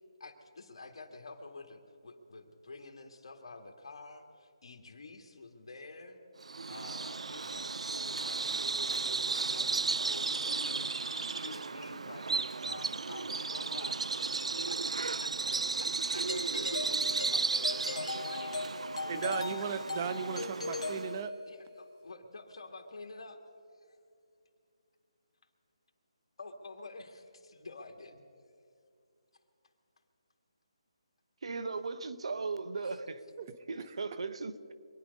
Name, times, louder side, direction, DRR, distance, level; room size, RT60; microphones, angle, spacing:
voice 1, 0.2-6.2 6.7-12.3 12.7-14.1 14.5-18.5 21.5-23.4 23.8-24.0 26.4-28.2 31.7-31.8 32.8-33.0, left 3 dB, 55° left, 2.1 m, -49 dB
Bird vocalization bird call bird song, 6.4-21.2, right 4 dB, 85° right, 0.4 m, -34 dB
Doorbell, 16.3-21.7, left 3 dB, 85° left, 1.4 m, -39 dB
voice 2, 19.1-21.3 33.4-33.9, right 7 dB, 30° right, 0.8 m, -37 dB
voice 3, 31.4-33.2 33.7-34.7, right 4 dB, 65° right, 1.1 m, -37 dB
25.0 x 9.6 x 5.4 m
hypercardioid pair, 165°, 3 cm